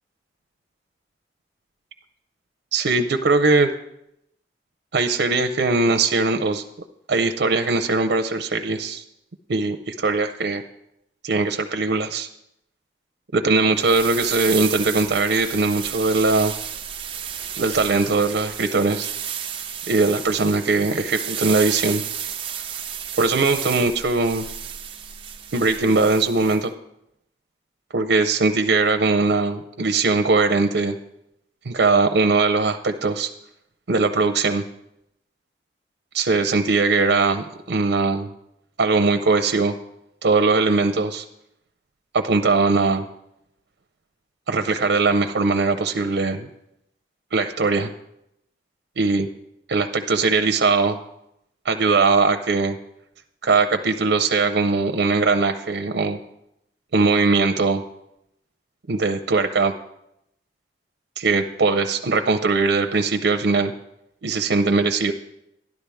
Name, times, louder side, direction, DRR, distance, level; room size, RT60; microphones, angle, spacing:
voice 1, 2.7-3.7 4.9-6.6 7.1-9.0 9.5-10.6 11.2-12.3 13.3-16.5 17.6-19.1 19.9-22.0 23.2-24.5 25.5-26.7 27.9-31.0 31.6-33.3 33.9-34.6 36.1-38.3 38.8-39.7 40.2-41.2 42.1-43.0 44.5-46.5 47.3-47.9 49.0-49.3 49.7-51.0 51.6-52.8 53.4-56.2 56.9-57.8 58.9-59.8 61.2-63.7 64.2-65.1, right 3 dB, 85° right, 7 dB, 0.6 m, -20 dB
sound 1, 13.8-26.6, right 9 dB, 30° right, 0.7 m, -32 dB
12.0 x 11.5 x 3.5 m, 0.82 s
head